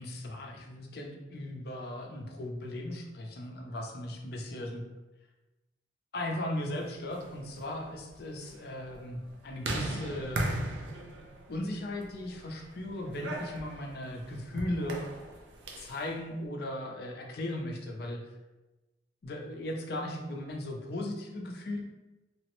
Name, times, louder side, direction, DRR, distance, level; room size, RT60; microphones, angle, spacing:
voice 1, 0.0-4.8 6.1-10.5 11.5-15.1 15.8-18.2 19.2-21.8, left 1 dB, 55° left, 2 dB, 0.4 m, -37 dB
sound 1, 7.0-16.1, right 1 dB, 80° right, 0.5 m, -39 dB
3.2 x 2.0 x 2.9 m, 1.1 s
head